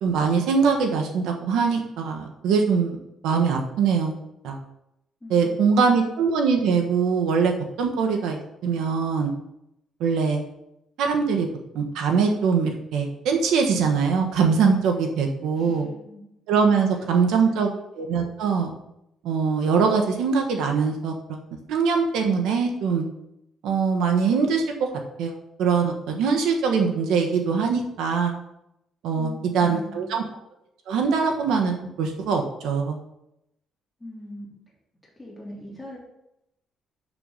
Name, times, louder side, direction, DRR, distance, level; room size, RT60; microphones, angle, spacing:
voice 1, 0.0-3.0 3.2-4.1 4.4-4.6 5.3-9.3 10.0-10.4 11.0-11.5 11.7-15.9 16.5-18.7 19.2-21.4 21.7-23.1 23.6-24.9 25.2-28.3 29.0-30.2 30.9-33.0, right 5 dB, 90° right, 3 dB, 1.3 m, -22 dB
voice 2, 5.2-6.1 15.5-16.2 16.7-17.7 29.1-30.1 34.0-34.5 35.2-36.0, equal, 10° left, -4 dB, 3.2 m, -41 dB
6.7 x 6.6 x 5.6 m, 0.82 s
cardioid pair, 135°, 0 cm